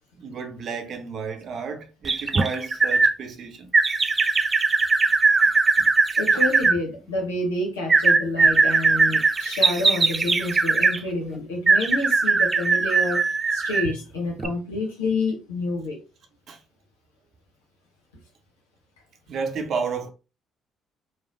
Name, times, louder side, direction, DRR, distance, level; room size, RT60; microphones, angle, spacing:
voice 1, 0.2-3.7 5.8-5.9 16.5-16.6 19.3-20.1, right 5 dB, 55° right, 0.7 m, -32 dB
sound 1, 2.0-3.1 3.7-6.8 7.9-11.0 11.7-13.9 14.4-14.5, right 4 dB, 35° right, 0.3 m, -20 dB
voice 2, 6.2-13.2 13.5-16.0, left 2 dB, 90° left, 0.9 m, -28 dB
3.2 x 2.2 x 2.7 m
hypercardioid pair, 50°, 0 cm